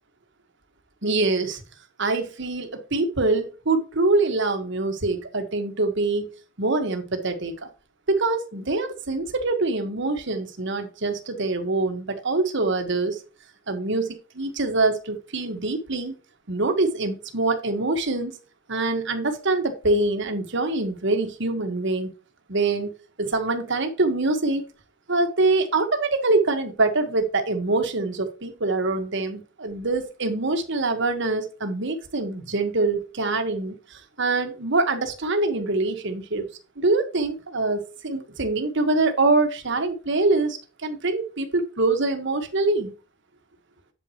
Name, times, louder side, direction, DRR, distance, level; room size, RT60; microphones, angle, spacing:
voice 1, 1.0-1.6 2.0-6.3 6.6-7.7 8.1-13.2 13.7-16.2 16.5-18.3 18.7-22.1 22.5-24.6 25.1-36.5 36.8-42.9, right 3 dB, 65° right, 6 dB, 1.6 m, -24 dB
8.2 x 7.7 x 3.1 m, 0.34 s
head